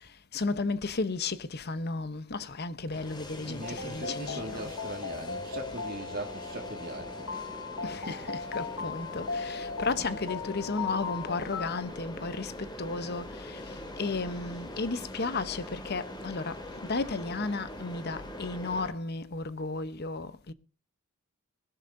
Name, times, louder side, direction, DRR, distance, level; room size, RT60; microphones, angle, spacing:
voice 1, 0.0-4.7 7.8-16.6 16.9-20.5, left 3 dB, 50° left, 0.9 m, -34 dB
sound 1, 2.9-18.9, left 1 dB, 20° left, 2.1 m, -43 dB
voice 2, 3.4-7.5, right 2 dB, 45° right, 2.0 m, -40 dB
sound 2, 3.6-11.8, left 5 dB, 80° left, 1.7 m, -38 dB
20.0 x 12.0 x 2.7 m
head